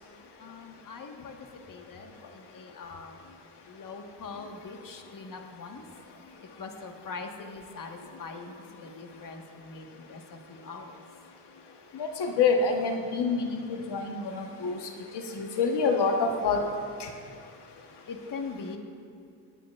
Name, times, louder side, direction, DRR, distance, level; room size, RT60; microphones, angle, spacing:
voice 1, 0.4-1.4 1.7-3.2 3.6-5.8 6.4-8.5 8.8-11.0 18.1-18.8, left 4 dB, 45° left, 3 dB, 1.5 m, -42 dB
voice 2, 11.9-14.8 15.1-16.6 17.0-17.1, left 4 dB, 65° left, 3 dB, 1.3 m, -27 dB
27.0 x 9.1 x 2.5 m, 2.3 s
cardioid pair, 90°, 44 cm